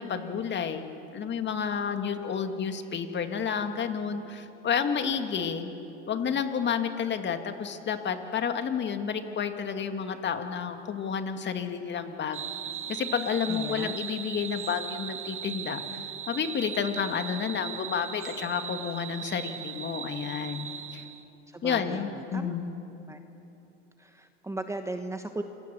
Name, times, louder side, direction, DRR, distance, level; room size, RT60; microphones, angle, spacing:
voice 1, 0.0-5.7 6.1-12.4 12.9-16.0 16.3-21.1 21.6-22.7, left 7 dB, 30° left, 7 dB, 2.1 m, -30 dB
sound 1, 12.3-21.2, right 9 dB, 35° right, 1.8 m, -38 dB
voice 2, 13.5-13.9 21.5-22.5 23.1-23.2 24.0-25.4, right 2 dB, 10° right, 7 dB, 1.2 m, -37 dB
28.0 x 22.5 x 7.0 m, 3.0 s
supercardioid pair, 110°, 36 cm